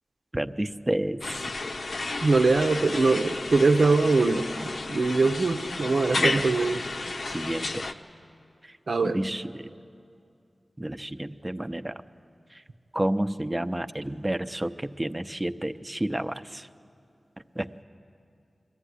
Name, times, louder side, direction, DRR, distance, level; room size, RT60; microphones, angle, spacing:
voice 1, 0.3-1.5 6.2-6.5 7.3-7.8 8.6-8.8 9.0-9.7 10.8-12.0 12.5-12.6 12.9-16.7 17.5-17.8, right 1 dB, 20° right, 10 dB, 0.6 m, -30 dB
sound 1, 1.2-7.9, left 2 dB, 75° left, 0.8 m, -32 dB
voice 2, 2.2-6.8 8.9-9.2, right 3 dB, 85° right, 5 dB, 0.9 m, -22 dB
22.0 x 14.5 x 9.8 m, 2.5 s
wide cardioid pair, 55°, 0 cm